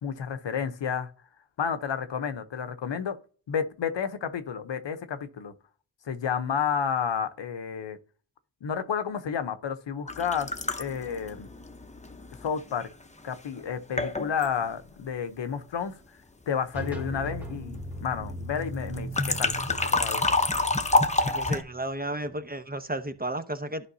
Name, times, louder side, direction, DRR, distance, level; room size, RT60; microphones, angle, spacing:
voice 1, 0.0-1.1 1.6-3.2 3.5-5.5 6.1-8.0 8.6-11.5 12.4-12.9 13.2-15.9 16.5-20.2, left 7 dB, 65° left, 0.9 m, -31 dB
sound 1, 10.1-12.9 13.6-13.7 14.0-14.5 18.9-21.6, left 2 dB, 15° left, 0.9 m, -27 dB
sound 2, 16.7-22.4, right 1 dB, 5° right, 1.7 m, -39 dB
voice 2, 21.2-23.9, right 1 dB, 20° right, 0.9 m, -33 dB
11.0 x 5.0 x 2.7 m
cardioid pair, 45°, 48 cm